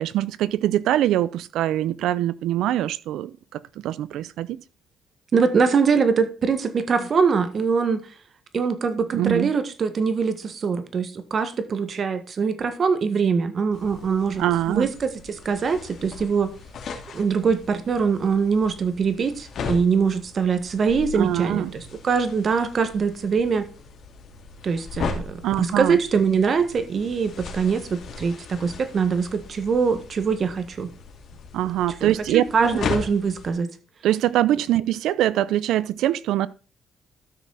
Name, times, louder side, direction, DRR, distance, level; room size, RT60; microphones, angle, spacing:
voice 1, 0.0-4.6 9.1-9.5 14.4-14.9 21.1-21.8 25.4-26.0 31.5-32.4 34.0-36.5, right 13 dB, 85° right, 0.5 m, -23 dB
voice 2, 5.3-8.0 8.5-16.5 17.1-23.7 24.6-30.9 32.0-33.7, right 5 dB, 50° right, 1.5 m, -23 dB
sound 1, 13.7-33.5, left 5 dB, 65° left, 2.5 m, -37 dB
13.0 x 6.3 x 4.0 m
cardioid pair, 90°, 0 cm